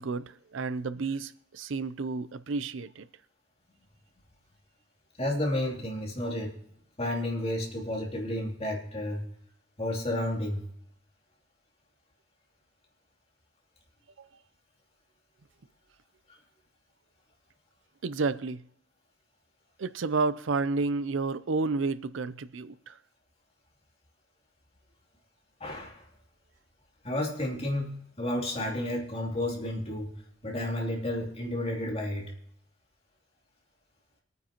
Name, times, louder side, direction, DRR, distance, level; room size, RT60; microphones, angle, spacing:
voice 1, 0.0-3.0 14.2-14.3 18.0-18.6 19.8-22.9, right 4 dB, 70° right, 0.5 m, -31 dB
voice 2, 5.2-6.5 7.0-9.2 9.8-10.6 25.6-26.1 27.0-30.1 30.4-32.3, left 1 dB, 30° left, 2.9 m, -31 dB
24.5 x 9.3 x 3.0 m
head